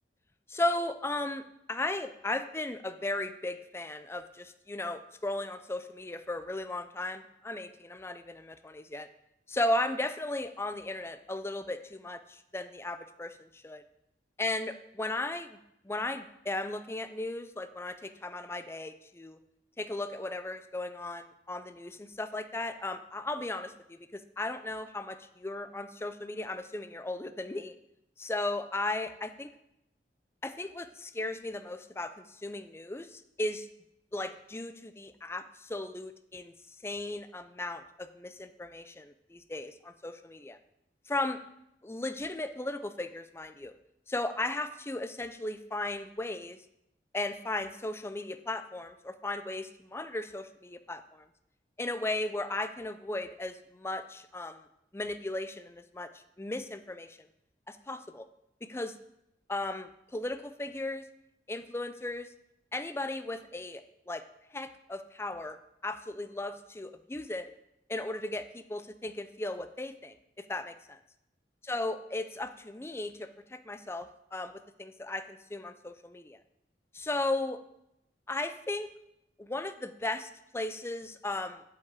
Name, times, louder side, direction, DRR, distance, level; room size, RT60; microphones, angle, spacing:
voice 1, 0.5-1.4 1.7-9.1 9.5-13.8 14.4-15.6 15.8-19.4 19.8-27.8 28.2-29.5 30.4-33.7 34.1-40.6 41.1-41.4 41.8-43.7 44.1-46.6 47.1-51.3 51.8-54.7 54.9-57.3 57.7-58.3 58.6-59.0 59.5-61.0 61.5-62.3 62.7-64.2 64.5-65.6 65.8-67.5 67.9-71.0 71.7-76.4 76.9-77.6 78.3-78.9 79.4-81.6, left 2 dB, 15° left, 9 dB, 0.4 m, -36 dB
7.3 x 7.3 x 4.7 m, 0.83 s
head